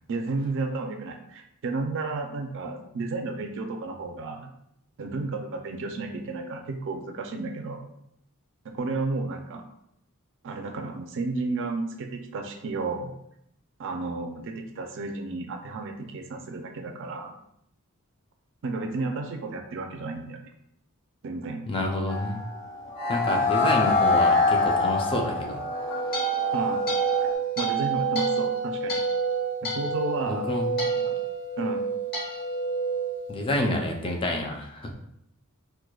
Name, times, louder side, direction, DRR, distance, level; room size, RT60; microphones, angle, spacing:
voice 1, 0.1-4.5 5.0-7.9 8.6-9.6 10.4-13.1 13.8-17.4 18.6-20.4 21.2-21.6 26.5-26.8 27.6-29.0 29.6-30.5 31.0-31.1 31.6-31.9, right 3 dB, 60° right, 4 dB, 0.4 m, -32 dB
voice 2, 21.7-22.4 23.1-25.6 30.3-30.9 33.3-34.9, left 1 dB, 25° left, 1 dB, 0.4 m, -28 dB
sound 1, 22.1-27.3, left 3 dB, 80° left, 1.5 m, -25 dB
sound 2, 25.6-34.0, right 5 dB, 45° left, 1.2 m, -28 dB
4.6 x 2.2 x 2.3 m, 0.75 s
head